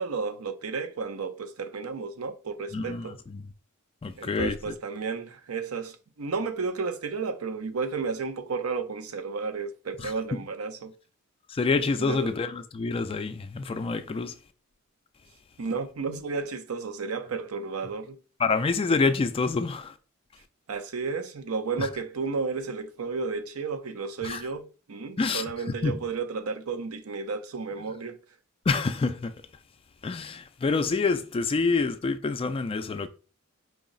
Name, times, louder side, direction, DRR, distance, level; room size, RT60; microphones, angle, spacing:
voice 1, 0.0-3.2 4.2-10.9 12.0-12.3 15.6-18.2 20.7-28.2, right 4 dB, 80° right, 0.6 m, -32 dB
voice 2, 2.7-3.4 4.0-4.7 10.0-10.1 11.5-14.3 18.4-19.9 21.8-21.9 24.2-24.4 25.2-25.4 25.8-25.9 28.7-29.3 30.0-33.1, left 4 dB, 25° left, 0.3 m, -27 dB
4.7 x 2.0 x 3.8 m
head